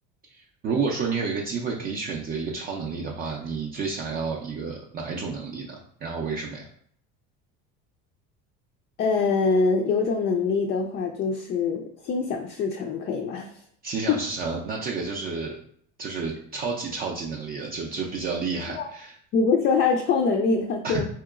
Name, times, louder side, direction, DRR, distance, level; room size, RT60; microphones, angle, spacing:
voice 1, 0.3-6.6 13.8-15.6 16.0-19.2 20.8-21.0, right 4 dB, 30° right, -1 dB, 0.5 m, -30 dB
voice 2, 9.0-13.5 14.1-14.2 18.7-18.9 19.3-21.1, left 4 dB, 35° left, 3 dB, 0.4 m, -24 dB
4.5 x 2.9 x 2.4 m, 0.62 s
cardioid pair, 145°, 29 cm